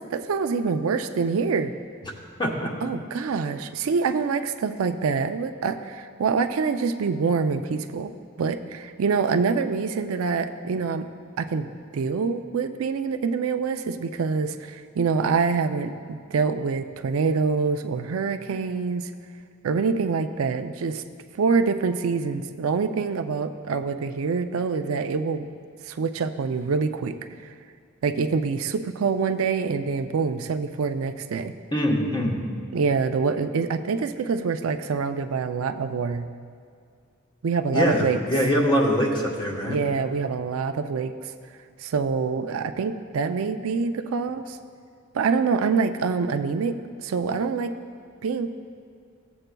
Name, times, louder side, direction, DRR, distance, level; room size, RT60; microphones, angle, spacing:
voice 1, 0.0-1.7 2.8-8.1 8.4-11.1 11.4-19.1 19.6-21.0 21.4-25.5 25.9-27.2 28.0-31.5 32.7-36.3 37.4-38.2 39.7-41.1 41.8-44.6 45.1-47.7 48.2-48.5, right 5 dB, 75° right, 8 dB, 0.4 m, -25 dB
voice 2, 2.4-2.7 31.7-32.4 37.7-39.8, equal, 20° left, -1 dB, 1.1 m, -23 dB
15.5 x 7.8 x 2.2 m, 2.2 s
head